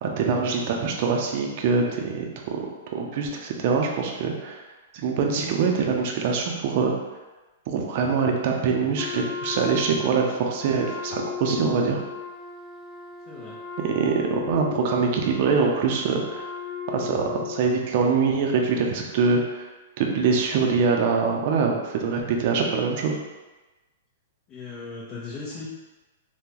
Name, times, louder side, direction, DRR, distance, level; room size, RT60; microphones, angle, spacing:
voice 1, 0.0-2.7 2.9-4.6 4.9-6.9 7.7-12.0 13.8-16.5 16.9-19.6 20.0-23.2, right 5 dB, 50° right, 1 dB, 0.5 m, -24 dB
Wind instrument woodwind instrument, 8.9-17.8, left 7 dB, 5° left, 0.4 m, -36 dB
voice 2, 13.3-13.6 24.5-25.7, left 3 dB, 35° left, -9 dB, 0.8 m, -37 dB
3.7 x 2.2 x 2.9 m, 1.2 s
hypercardioid pair, 140°, 0 cm